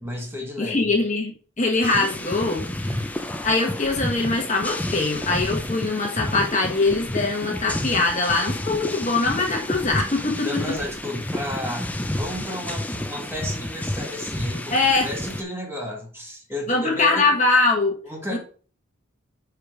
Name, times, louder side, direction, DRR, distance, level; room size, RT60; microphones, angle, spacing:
voice 1, 0.0-0.9 10.4-17.4 18.0-18.4, left 1 dB, 10° right, 0 dB, 1.3 m, -33 dB
voice 2, 0.6-3.2 3.4-10.5 14.7-15.1 16.7-17.9 18.3-18.4, left 3 dB, 35° left, 1 dB, 1.3 m, -22 dB
sound 1, 1.8-15.4, left 1 dB, 5° left, 0.5 m, -30 dB
4.9 x 4.8 x 5.0 m, 0.41 s
head